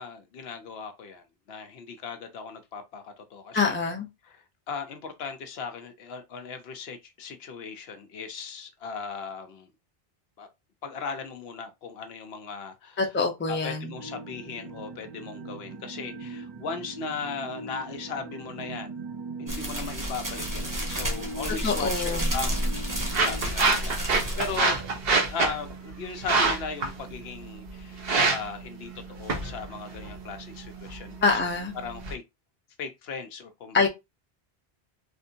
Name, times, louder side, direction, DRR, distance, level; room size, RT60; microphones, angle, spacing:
voice 1, 0.0-3.8 4.2-4.4 4.7-9.7 10.4-10.5 10.8-13.0 13.5-18.9 19.4-24.8 25.3-31.3 31.7-32.2 32.8-33.9, left 5 dB, 80° left, 0.9 m, -37 dB
voice 2, 3.5-4.1 13.0-13.9 21.6-22.4 31.2-31.7 33.7-33.9, left 4 dB, 15° left, 0.5 m, -25 dB
sound 1, 13.9-23.5, right 3 dB, 45° right, 0.3 m, -40 dB
sound 2, 19.5-24.7, equal, 20° right, 1.0 m, -31 dB
sound 3, 22.1-32.1, right 3 dB, 70° right, 1.1 m, -28 dB
3.5 x 2.6 x 2.7 m
omnidirectional pair, 1.0 m